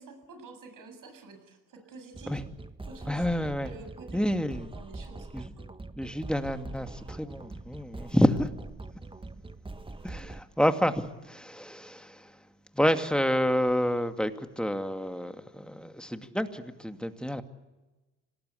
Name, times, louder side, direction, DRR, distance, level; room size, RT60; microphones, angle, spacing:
voice 1, 0.0-2.4 2.9-3.3 3.6-4.4 4.7-5.7 10.1-10.2, right 3 dB, 65° right, 7 dB, 7.5 m, -48 dB
sound 1, 2.1-10.4, right 2 dB, 15° right, 1.3 m, -43 dB
voice 2, 3.1-3.7 4.1-4.7 5.3-5.5 6.0-8.5 10.0-12.3 12.7-17.4, equal, 5° left, 7 dB, 2.3 m, -28 dB
26.0 x 19.0 x 8.4 m, 1.1 s
hypercardioid pair, 55°, 35 cm